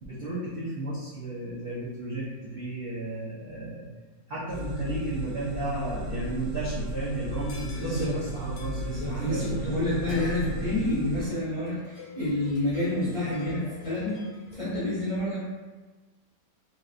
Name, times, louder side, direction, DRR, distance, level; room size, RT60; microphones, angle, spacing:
voice 1, 0.1-3.9 4.3-9.8, right 1 dB, 65° right, -8 dB, 0.5 m, -34 dB
sound 1, 4.5-11.2, right 2 dB, 90° right, 1.4 m, -34 dB
sound 2, 7.3-14.5, left 5 dB, 85° left, 1.2 m, -44 dB
voice 2, 7.8-8.1 8.8-14.2 14.5-15.4, left 1 dB, 35° left, -10 dB, 0.5 m, -29 dB
3.4 x 2.5 x 2.4 m, 1.3 s
omnidirectional pair, 1.8 m